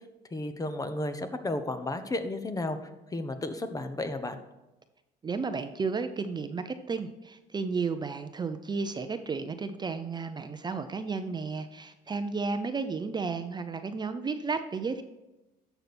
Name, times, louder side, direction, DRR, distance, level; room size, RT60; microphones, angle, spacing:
voice 1, 0.3-2.8 3.1-4.4, left 2 dB, 20° left, 9 dB, 0.9 m, -33 dB
voice 2, 5.2-15.0, right 4 dB, 25° right, 9 dB, 0.6 m, -33 dB
11.0 x 6.8 x 4.3 m, 1.0 s
cardioid pair, 110°, 17 cm